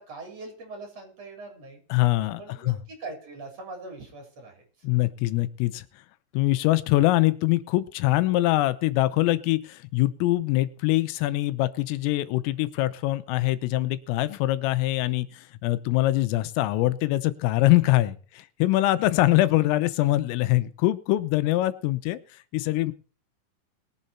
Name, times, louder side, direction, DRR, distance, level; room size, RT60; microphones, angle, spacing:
voice 1, 0.0-1.8 2.4-4.6, right 3 dB, 35° right, 3 dB, 4.2 m, -41 dB
voice 2, 1.9-2.8 4.8-5.8 6.3-22.2 22.5-22.9, left 17 dB, 90° left, 14 dB, 3.5 m, -23 dB
22.0 x 7.6 x 4.3 m, 0.40 s
omnidirectional pair, 5.8 m